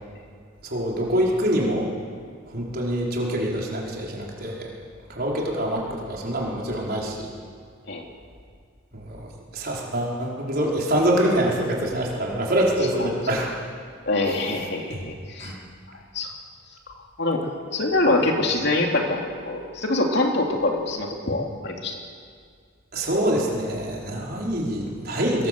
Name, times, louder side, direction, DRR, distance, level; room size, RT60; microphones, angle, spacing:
voice 1, 0.6-1.9 2.5-4.7 5.1-7.3 8.9-9.3 9.5-13.5 14.9-15.0 15.4-15.6 22.9-25.5, right 1 dB, 45° right, -3 dB, 5.0 m, -25 dB
voice 2, 14.1-15.6 15.9-16.3 17.2-22.0, left 2 dB, 55° left, 1 dB, 2.9 m, -25 dB
24.0 x 22.0 x 7.9 m, 2.1 s
head